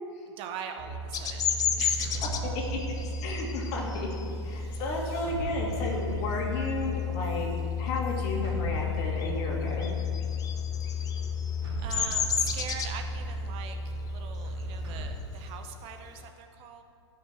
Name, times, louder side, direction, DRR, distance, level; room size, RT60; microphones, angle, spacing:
voice 1, 0.3-2.3 10.9-11.1 11.8-16.8, right 7 dB, 40° right, 6 dB, 0.9 m, -42 dB
sound 1, 0.8-15.1, left 3 dB, 65° right, 2.3 m, -33 dB
Bird vocalization bird call bird song, 1.1-6.3 6.8-7.1 7.4-8.6 8.9-16.3, left 7 dB, 25° left, 0.8 m, -33 dB
voice 2, 2.7-4.1 4.4-7.5 7.8-9.9, left 2 dB, 50° left, -2 dB, 2.8 m, -33 dB
17.0 x 6.1 x 4.9 m, 2.4 s
hypercardioid pair, 110°, 15 cm